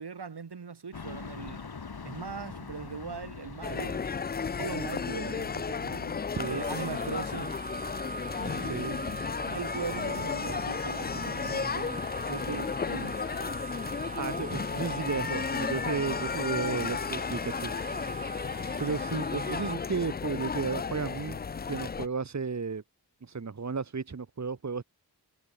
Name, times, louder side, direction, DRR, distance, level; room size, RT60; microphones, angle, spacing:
voice 1, 0.0-1.6 2.0-4.1 4.5-6.2 6.5-7.6 8.4-9.1 9.5-13.2, right 5 dB, 85° right, 4.5 m, -40 dB
sound 1, 0.9-5.5, left 5 dB, 70° left, 4.8 m, -44 dB
sound 2, 3.6-22.1, left 5 dB, 25° left, 0.3 m, -34 dB
voice 2, 6.3-6.6 8.6-8.9 14.2-18.3 18.8-21.4 21.7-22.8 23.2-24.8, right 5 dB, 45° right, 1.4 m, -33 dB
sound 3, 6.4-19.7, right 3 dB, 20° right, 0.8 m, -41 dB
wide cardioid pair, 80°, 39 cm